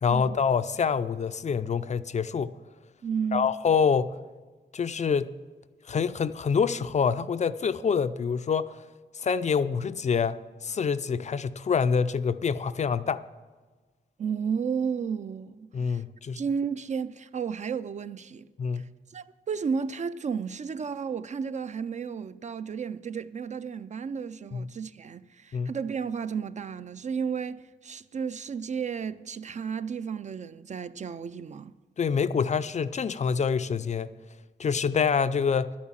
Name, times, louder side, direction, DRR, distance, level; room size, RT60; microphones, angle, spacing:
voice 1, 0.0-2.5 3.3-4.2 4.7-5.3 5.9-8.8 9.1-13.2 15.7-16.4 18.6-18.8 24.5-24.7 25.5-25.7 32.0-34.1 34.6-35.8, left 6 dB, 40° left, 0.4 m, -26 dB
voice 2, 3.0-3.5 14.2-16.0 16.4-18.5 18.7-31.7, right 6 dB, 40° right, 0.4 m, -33 dB
11.0 x 8.5 x 7.3 m
wide cardioid pair, 145°, 19 cm